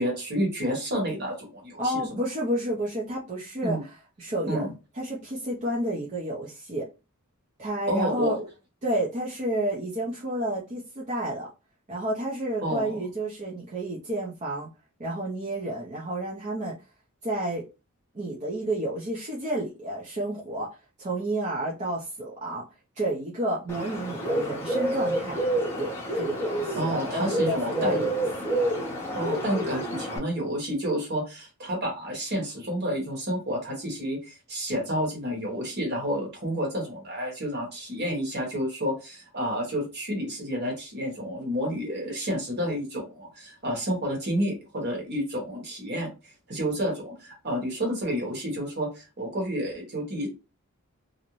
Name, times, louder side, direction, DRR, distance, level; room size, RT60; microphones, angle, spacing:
voice 1, 0.0-2.2 3.6-3.8 4.4-4.7 7.9-8.4 12.6-13.0 26.8-28.1 29.1-50.3, equal, 50° right, -1 dB, 1.2 m, -30 dB
voice 2, 1.8-4.7 4.9-6.9 7.6-8.4 8.8-11.5 11.9-14.7 15.0-16.8 17.2-17.6 18.1-20.7 21.0-22.6 22.9-25.4 25.8-28.5, right 1 dB, 35° right, -6 dB, 0.6 m, -30 dB
Bird, 23.7-30.2, right 1 dB, 10° left, 0.7 m, -29 dB
2.5 x 2.1 x 3.0 m, 0.29 s
head